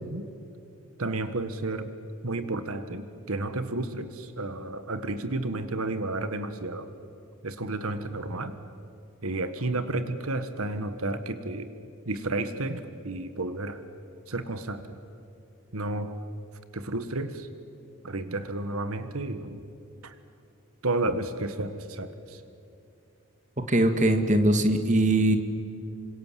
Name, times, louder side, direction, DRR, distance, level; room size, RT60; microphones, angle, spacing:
voice 1, 1.0-1.9 2.2-6.9 7.4-8.6 9.2-11.7 12.0-13.8 14.3-15.0 15.7-16.2 16.7-17.5 18.0-19.6 20.0-20.2 20.8-22.4, right 2 dB, 75° right, 10 dB, 1.6 m, -32 dB
voice 2, 23.7-25.4, right 1 dB, 35° right, 7 dB, 1.8 m, -21 dB
28.0 x 26.0 x 7.6 m, 2.6 s
head